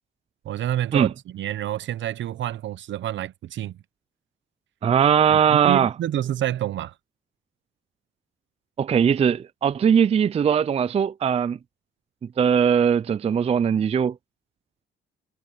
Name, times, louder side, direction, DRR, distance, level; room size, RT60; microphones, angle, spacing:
voice 1, 0.4-3.8 5.3-6.9, right 12 dB, 70° right, 0.9 m, -28 dB
voice 2, 4.8-5.9 8.8-11.6 12.4-14.2, right 8 dB, 30° right, 0.4 m, -20 dB
cardioid pair, 90°, 20 cm